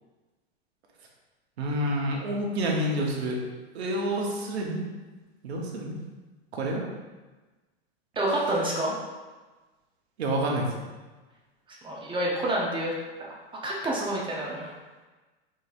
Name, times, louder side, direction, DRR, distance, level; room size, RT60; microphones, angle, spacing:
voice 1, 1.6-3.4 3.7-4.8 5.4-6.0 6.5-6.8 10.2-10.7, right 1 dB, 85° right, -1 dB, 1.1 m, -28 dB
voice 2, 8.2-9.0 11.8-12.9 13.2-13.4 13.6-14.7, right 1 dB, 15° right, -3 dB, 0.7 m, -28 dB
4.1 x 4.1 x 2.5 m, 1.2 s
hypercardioid pair, 125°, 31 cm